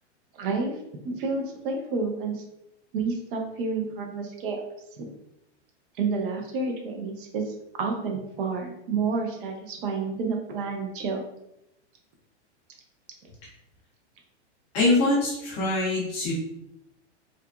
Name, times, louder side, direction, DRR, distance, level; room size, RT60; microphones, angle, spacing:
voice 1, 0.3-0.8 1.0-2.4 2.9-4.6 5.0-5.1 6.0-11.2, right 4 dB, 50° right, 2 dB, 0.5 m, -30 dB
voice 2, 14.7-16.3, left 2 dB, 20° left, -4 dB, 0.5 m, -23 dB
2.7 x 2.4 x 2.3 m, 0.84 s
supercardioid pair, 170°, 35 cm